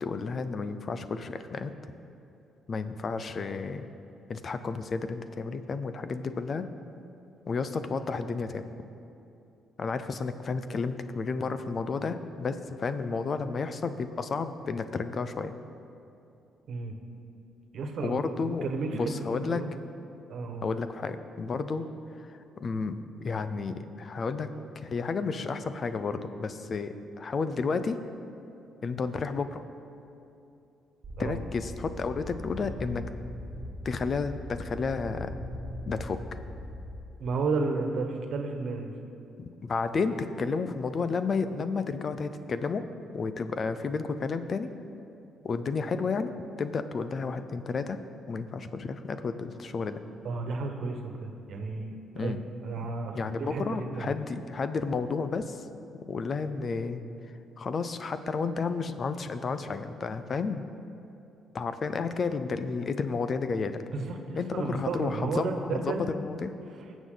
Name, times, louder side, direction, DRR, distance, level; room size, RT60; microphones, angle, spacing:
voice 1, 0.0-1.7 2.7-3.9 4.3-6.6 7.5-8.7 9.8-15.5 18.0-18.7 18.9-19.6 20.6-21.9 22.2-24.5 24.7-28.0 28.8-29.6 31.2-33.0 33.8-35.3 35.9-36.4 39.6-42.9 43.1-44.7 45.4-48.0 48.3-50.0 52.1-52.4 53.1-55.7 56.1-57.0 57.6-60.6 61.5-63.8 64.4-66.5, left 4 dB, 45° left, 10 dB, 0.7 m, -32 dB
voice 2, 17.7-18.2 18.6-19.7 20.3-20.7 31.2-31.4 37.2-38.9 50.2-52.3 52.6-54.1 63.9-66.1, right 4 dB, 65° right, 4 dB, 1.3 m, -32 dB
sound 1, 31.0-37.0, left 1 dB, 45° right, 1.5 m, -40 dB
19.5 x 7.3 x 4.0 m, 2.7 s
cardioid pair, 90°, 0 cm